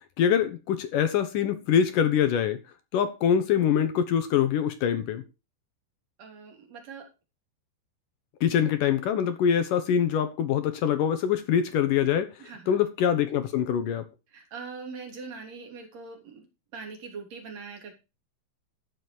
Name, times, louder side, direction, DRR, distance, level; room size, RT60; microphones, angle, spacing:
voice 1, 0.2-2.6 2.9-5.2 8.4-12.3 12.7-14.0, left 8 dB, 70° left, 2.2 m, -24 dB
voice 2, 6.2-7.1 12.4-12.8 14.3-16.4 16.7-17.9, right 4 dB, 40° right, 4.1 m, -42 dB
14.5 x 7.0 x 4.6 m
omnidirectional pair, 4.9 m